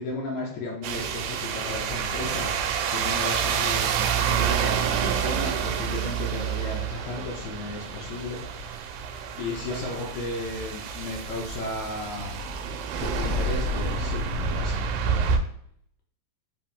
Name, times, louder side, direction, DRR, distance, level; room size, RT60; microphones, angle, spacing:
voice 1, 0.0-8.9 9.4-12.4 13.0-15.4, left 3 dB, 90° left, -1 dB, 1.6 m, -35 dB
sound 1, 0.8-15.4, right 6 dB, 85° right, 2.3 m, -28 dB
5.5 x 2.5 x 3.5 m, 0.65 s
omnidirectional pair, 4.2 m